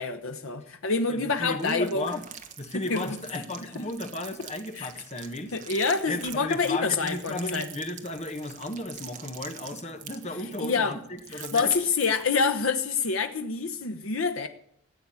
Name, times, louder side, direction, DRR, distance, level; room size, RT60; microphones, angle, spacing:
voice 1, 0.0-2.0 2.9-3.0 3.6-3.7 4.7-4.9 5.5-7.7 10.6-11.0 11.3-14.5, left 4 dB, 80° left, 7 dB, 0.9 m, -27 dB
voice 2, 1.1-2.2 2.6-5.5 6.1-11.7, left 2 dB, 35° left, 7 dB, 1.5 m, -34 dB
sound 1, 1.6-12.4, right 8 dB, 35° right, 1.3 m, -45 dB
14.5 x 8.5 x 8.5 m, 0.69 s
head